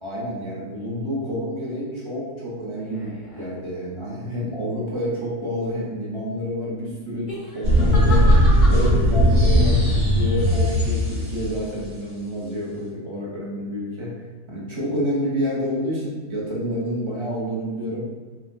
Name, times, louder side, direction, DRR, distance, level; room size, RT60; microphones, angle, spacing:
voice 1, 0.0-7.3 7.5-8.3 8.7-14.2 14.5-18.1, equal, 25° right, -7 dB, 0.6 m, -28 dB
sound 1, 2.8-3.5 7.1-9.0 9.5-9.8, left 1 dB, 45° left, 0.6 m, -35 dB
sound 2, 7.6-11.6, equal, 65° right, 1.9 m, -17 dB
4.5 x 2.1 x 2.6 m, 1.3 s
omnidirectional pair, 1.6 m